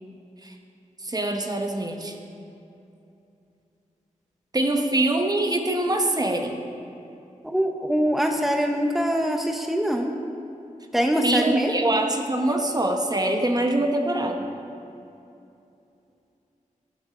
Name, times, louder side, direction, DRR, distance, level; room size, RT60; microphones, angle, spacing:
voice 1, 1.0-2.2 4.5-6.6 11.2-14.5, right 1 dB, 30° right, 3 dB, 1.0 m, -24 dB
voice 2, 7.4-10.1 10.9-11.7, equal, ahead, 3 dB, 1.0 m, -23 dB
15.0 x 8.2 x 5.1 m, 2.7 s
wide cardioid pair, 80°, 14 cm